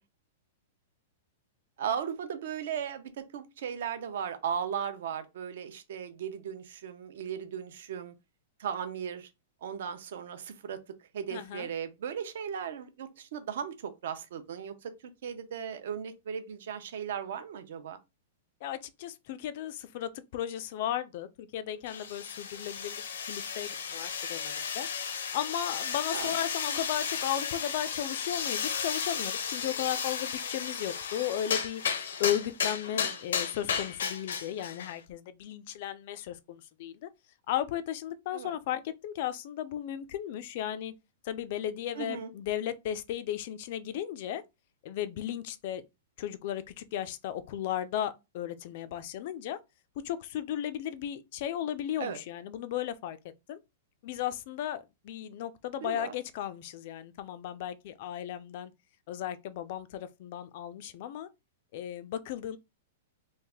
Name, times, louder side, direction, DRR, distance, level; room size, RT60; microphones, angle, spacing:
voice 1, 1.8-8.1 8.6-9.3 9.6-14.9 15.2-18.0 26.1-26.3 26.7-26.8 32.9-33.2 38.3-38.5 41.9-42.3 52.0-52.2 55.8-56.1, right 8 dB, 55° right, 0.6 m, -37 dB
voice 2, 11.3-11.7 18.6-23.0 23.3-24.9 25.3-31.8 32.2-37.1 37.5-40.9 41.2-44.4 44.8-45.8 46.2-49.6 50.0-53.2 53.5-53.6 54.0-58.7 59.1-61.3 61.7-62.6, left 11 dB, 40° left, 0.3 m, -35 dB
sound 1, 21.9-35.0, left 6 dB, 85° left, 0.6 m, -34 dB
3.2 x 2.4 x 3.5 m
supercardioid pair, 175°, 0 cm